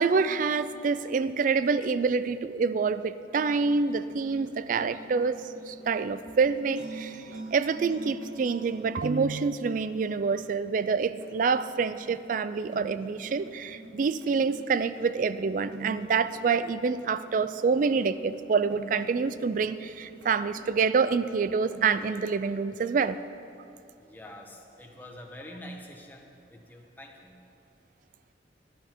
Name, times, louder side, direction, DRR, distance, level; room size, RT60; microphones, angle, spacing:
voice 1, 0.0-7.2 7.5-23.2, right 5 dB, 45° right, 14 dB, 0.3 m, -27 dB
sound 1, 3.4-21.9, right 2 dB, 90° right, 1.8 m, -46 dB
voice 2, 24.0-27.4, left 1 dB, 10° left, 1 dB, 1.1 m, -46 dB
14.0 x 11.0 x 4.6 m, 2.6 s
head